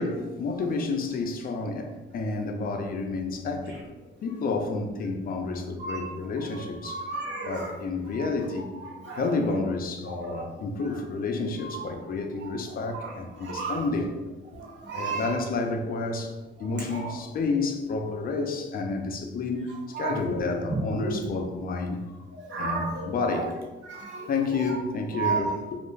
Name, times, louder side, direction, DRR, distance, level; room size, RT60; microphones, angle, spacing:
voice 1, 0.0-3.8 4.2-7.1 7.4-8.7 9.2-14.1 14.9-22.2 22.6-23.6 24.1-25.6, left 3 dB, 45° left, 4 dB, 0.4 m, -30 dB
voice 2, 6.5-7.7 8.2-8.3 8.8-9.3 10.1-10.5 11.6-11.9 12.4-12.6 12.8-13.8 14.5-15.3 16.6-17.1 19.7-21.3 22.3-23.5 23.8-24.3 24.6-24.8 25.1-25.5, right 4 dB, 65° right, -5 dB, 1.0 m, -33 dB
2.3 x 2.1 x 3.1 m, 1.2 s
cardioid pair, 90°, 20 cm